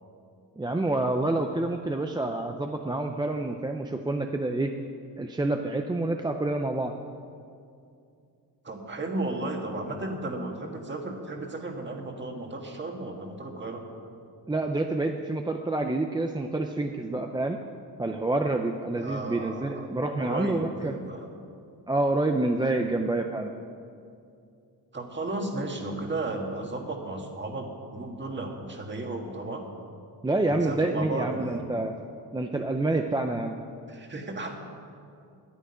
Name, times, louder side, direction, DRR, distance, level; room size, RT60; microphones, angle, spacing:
voice 1, 0.6-4.7 5.2-6.9 14.5-17.6 18.0-21.0 21.9-23.5 30.2-31.9 32.3-33.6, right 2 dB, 10° right, 4 dB, 0.5 m, -28 dB
voice 2, 8.6-13.8 19.0-19.9 20.2-21.3 24.9-29.7 30.5-31.6 33.9-34.5, right 2 dB, 25° right, 2 dB, 1.7 m, -34 dB
10.5 x 10.0 x 9.6 m, 2.5 s
wide cardioid pair, 150°, 41 cm